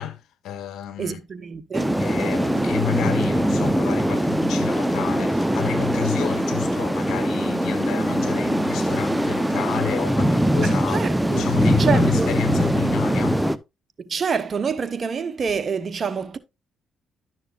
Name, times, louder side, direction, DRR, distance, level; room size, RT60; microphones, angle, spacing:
voice 1, 0.0-1.2 2.0-11.0 11.3-13.5, left 12 dB, 75° left, 1.3 m, -30 dB
voice 2, 1.0-2.0 10.6-12.6 14.1-16.4, right 6 dB, 45° right, 1.0 m, -27 dB
sound 1, 1.7-13.6, equal, 5° right, 0.6 m, -22 dB
11.5 x 6.5 x 2.4 m
supercardioid pair, 65°, 0 cm